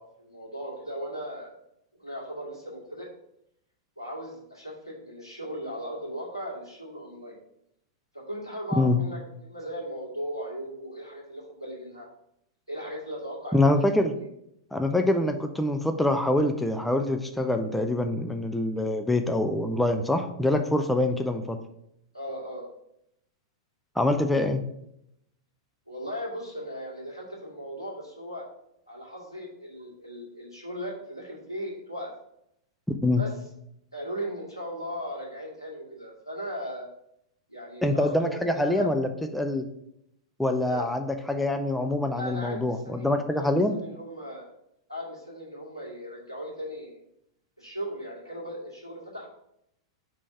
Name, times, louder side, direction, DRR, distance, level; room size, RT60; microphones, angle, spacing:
voice 1, 0.0-1.6 2.0-3.1 4.0-7.4 8.1-12.1 12.7-13.7 14.1-14.3 15.1-15.2 21.2-21.3 22.1-22.7 25.9-28.4 28.9-32.1 33.2-33.3 33.9-36.9 37.5-38.9 40.7-40.8 42.1-43.1 43.3-44.5 44.9-47.0 47.6-49.3, equal, 90° left, -4 dB, 1.9 m, -37 dB
voice 2, 13.5-14.2 14.7-21.6 24.0-24.6 32.9-33.2 37.8-39.7 40.4-43.8, left 1 dB, 5° left, 6 dB, 0.4 m, -25 dB
5.1 x 3.4 x 5.5 m, 0.78 s
figure-of-eight pair, 95°, 2 cm